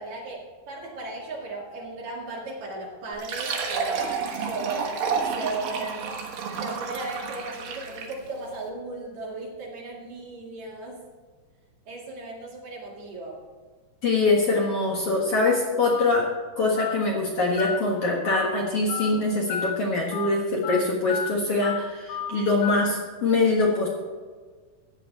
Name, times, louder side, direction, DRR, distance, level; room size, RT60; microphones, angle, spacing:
voice 1, 0.0-6.1 6.4-11.0 11.9-13.4, right 2 dB, 55° right, -2 dB, 3.1 m, -36 dB
Fill (with liquid), 3.1-8.3, right 5 dB, 75° right, 3.1 m, -30 dB
voice 2, 14.0-16.3 16.6-23.9, left 3 dB, 50° left, -2 dB, 2.1 m, -23 dB
Telephone, 15.9-16.1 16.8-16.9 17.6-17.8 18.3-18.5 18.9-19.1 19.5-19.7 20.1-20.3 20.6-20.8 21.1-21.3 21.6-21.8 22.1-22.3 22.6-22.8, left 8 dB, 80° left, 2.7 m, -31 dB
14.0 x 9.2 x 4.1 m, 1.5 s
omnidirectional pair, 4.2 m